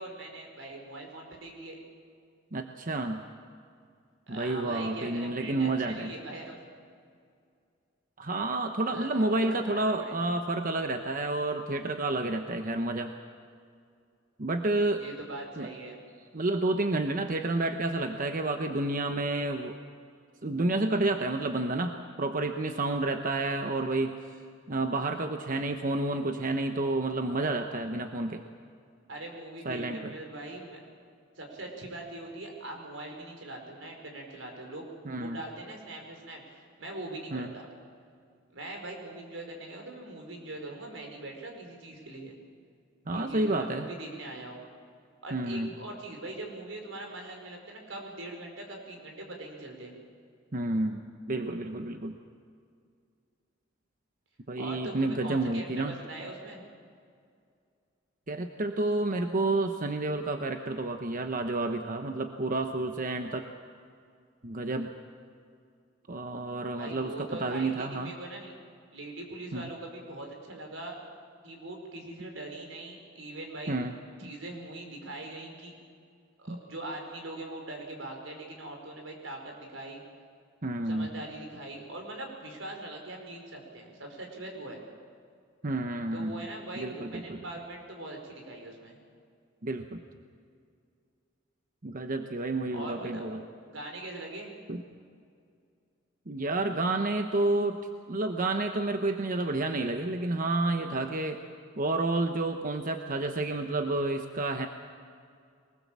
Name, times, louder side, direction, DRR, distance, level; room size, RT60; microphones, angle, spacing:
voice 1, 0.0-1.8 4.3-6.6 8.9-10.3 15.0-16.0 29.1-30.8 31.3-34.9 35.2-37.7 38.5-42.4 43.1-44.6 45.2-49.9 54.6-56.6 66.7-68.5 68.9-71.0 71.4-73.8 74.2-75.7 76.4-80.0 80.8-84.8 86.1-89.0 92.7-93.3 93.7-94.5, right 2 dB, 90° right, 2 dB, 4.8 m, -42 dB
voice 2, 2.5-3.2 4.3-6.1 8.2-13.1 14.4-15.0 15.6-15.7 16.3-19.8 20.4-24.1 24.7-28.4 29.6-30.1 35.0-35.4 37.3-37.5 43.1-43.9 45.3-45.7 50.5-52.2 54.5-56.0 58.3-63.5 64.4-64.9 66.1-68.1 69.5-69.7 73.7-73.9 74.2-74.3 76.5-76.6 80.6-81.1 85.6-86.4 86.8-87.4 89.6-90.0 91.8-93.4 94.7-94.8 96.3-97.8 98.1-101.4 101.8-104.7, right 2 dB, 45° right, 6 dB, 1.0 m, -30 dB
23.0 x 20.0 x 7.4 m, 2.3 s
head